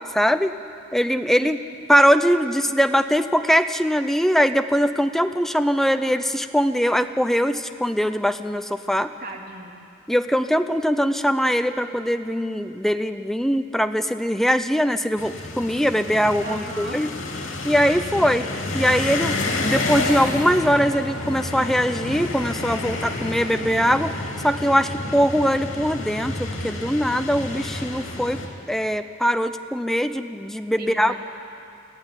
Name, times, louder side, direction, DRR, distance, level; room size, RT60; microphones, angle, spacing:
voice 1, 0.1-0.6 0.9-1.6 1.9-9.1 10.1-17.1 17.6-18.5 18.7-24.2 24.4-28.4 28.7-31.1, equal, ahead, 9 dB, 0.6 m, -21 dB
voice 2, 9.2-9.9 16.4-17.0 25.1-25.3 30.8-31.2, right 2 dB, 50° right, 1 dB, 2.5 m, -37 dB
sound 1, 15.2-28.5, left 2 dB, 85° left, 3.0 m, -29 dB
20.5 x 14.0 x 9.9 m, 2.6 s
head